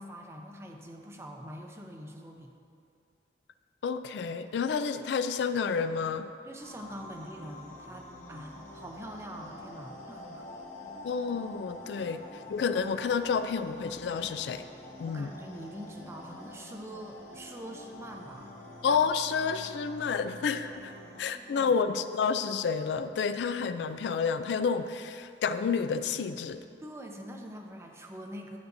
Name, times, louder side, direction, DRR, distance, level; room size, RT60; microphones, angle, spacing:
voice 1, 0.0-2.5 6.4-10.6 12.0-12.1 15.1-18.6 21.3-21.8 26.8-28.6, equal, 15° right, 2 dB, 0.6 m, -44 dB
voice 2, 3.8-6.3 11.0-12.2 12.5-14.6 15.0-15.3 18.8-20.9 21.2-26.6, left 6 dB, 75° left, 11 dB, 0.3 m, -30 dB
sound 1, 6.6-21.3, left 1 dB, 45° left, 1.1 m, -47 dB
9.5 x 8.3 x 2.6 m, 2.5 s
head